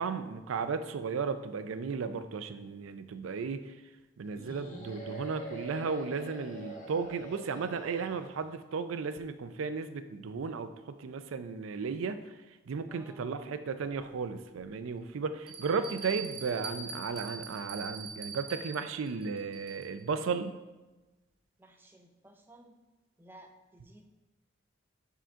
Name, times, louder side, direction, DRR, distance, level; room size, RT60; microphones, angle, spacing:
voice 1, 0.0-3.7 4.2-12.4 12.7-20.6, right 5 dB, 90° right, 10 dB, 0.4 m, -35 dB
sound 1, 4.4-8.5, right 2 dB, 40° left, 0.9 m, -45 dB
voice 2, 12.9-13.3 21.6-22.8 23.2-24.1, right 1 dB, 10° right, 4 dB, 0.4 m, -56 dB
Bell, 13.9-14.0 14.6-14.7 15.5-20.0, right 4 dB, 50° right, 0.8 m, -43 dB
5.0 x 3.8 x 5.5 m, 1.1 s
head